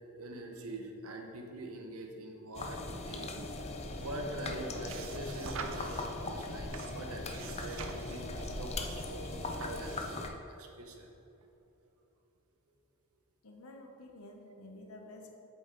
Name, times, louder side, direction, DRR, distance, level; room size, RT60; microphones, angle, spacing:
voice 1, 0.2-11.1, right 1 dB, 80° right, 3 dB, 1.0 m, -44 dB
sound 1, 2.5-10.3, left 2 dB, 30° left, 0.6 m, -40 dB
sound 2, 3.5-10.3, right 3 dB, 60° right, 0.6 m, -46 dB
voice 2, 13.4-15.3, left 1 dB, 75° left, 2 dB, 0.9 m, -50 dB
8.1 x 6.9 x 3.9 m, 2.9 s
head